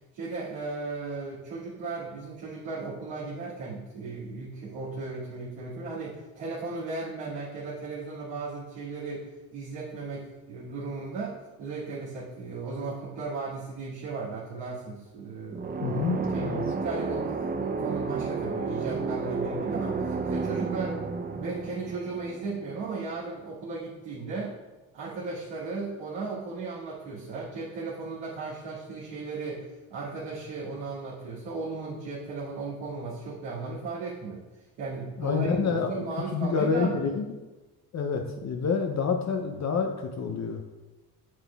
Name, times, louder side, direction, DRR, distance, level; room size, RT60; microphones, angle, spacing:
voice 1, 0.1-15.7 16.1-16.5 16.8-21.0 21.3-24.6 24.9-37.0, right 3 dB, 70° right, -9 dB, 2.2 m, -36 dB
sound 1, 15.5-23.2, right 4 dB, 20° right, 0.5 m, -31 dB
voice 2, 15.8-16.6 35.2-36.1 36.3-37.3 37.9-40.6, left 5 dB, 35° left, 3 dB, 0.7 m, -28 dB
7.4 x 6.5 x 2.4 m, 1.2 s
hypercardioid pair, 70°, 46 cm